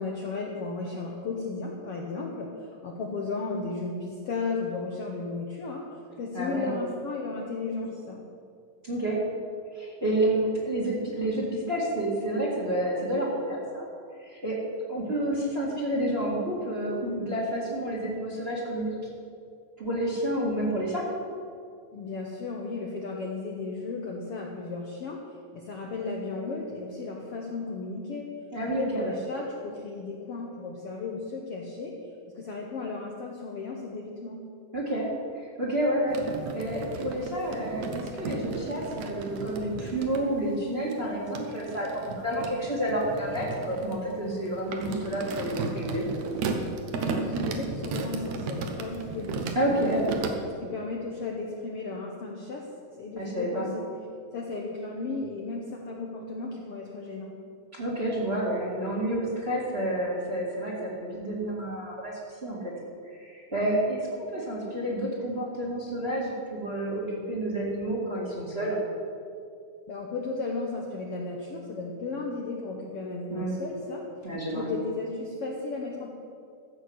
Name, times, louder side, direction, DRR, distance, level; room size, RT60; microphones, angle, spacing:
voice 1, 0.0-5.9 6.2-8.2 21.9-25.2 25.5-28.3 28.8-31.9 32.3-34.4 46.9-49.9 50.4-52.7 53.0-53.9 54.3-57.3 69.9-76.1, left 3 dB, 60° left, -1 dB, 1.6 m, -34 dB
voice 2, 6.3-6.7 8.8-9.2 9.7-13.8 14.2-14.6 14.9-19.0 19.8-21.0 28.5-29.2 34.7-35.1 35.3-36.2 36.5-46.1 49.5-50.0 53.2-53.7 57.7-62.1 62.4-62.6 63.2-68.8 73.3-73.5 74.2-74.7, right 1 dB, 20° right, -3 dB, 1.9 m, -29 dB
sound 1, 36.1-40.2 40.9-50.3, right 4 dB, 65° right, 2.1 m, -35 dB
14.5 x 6.4 x 7.9 m, 2.3 s
omnidirectional pair, 3.7 m